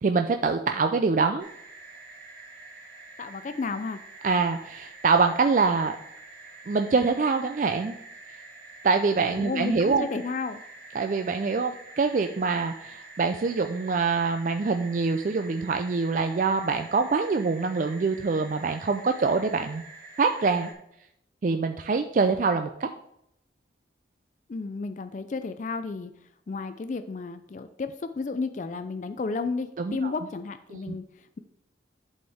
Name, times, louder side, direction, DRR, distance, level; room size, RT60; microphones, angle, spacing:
voice 1, 0.0-1.5 4.2-6.0 6.7-7.9 8.8-10.1 10.9-19.8 20.2-20.7 21.4-22.9 29.8-30.1 30.7-30.9, right 4 dB, 45° right, 6 dB, 0.3 m, -25 dB
sound 1, 1.4-20.7, right 3 dB, 65° right, 1.5 m, -47 dB
voice 2, 3.2-4.0 9.2-10.6 24.5-26.1 26.5-31.4, left 4 dB, 40° left, 10 dB, 0.3 m, -32 dB
10.5 x 4.3 x 3.5 m, 0.77 s
head